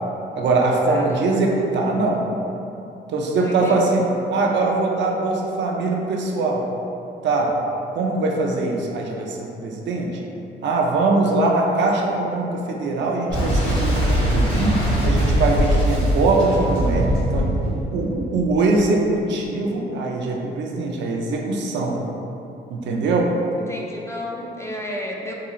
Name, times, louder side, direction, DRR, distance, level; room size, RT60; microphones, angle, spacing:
voice 1, 0.4-2.2 3.1-6.6 7.2-7.6 7.9-10.2 10.6-22.0 22.7-23.3, right 3 dB, 65° right, -1 dB, 0.5 m, -22 dB
voice 2, 0.9-1.8 3.4-3.9 11.2-11.6 23.6-25.3, left 1 dB, 15° left, -2 dB, 0.4 m, -33 dB
Boom, 13.3-18.9, equal, 85° left, 1.4 m, -21 dB
3.8 x 2.3 x 3.0 m, 2.8 s
cardioid pair, 90°, 20 cm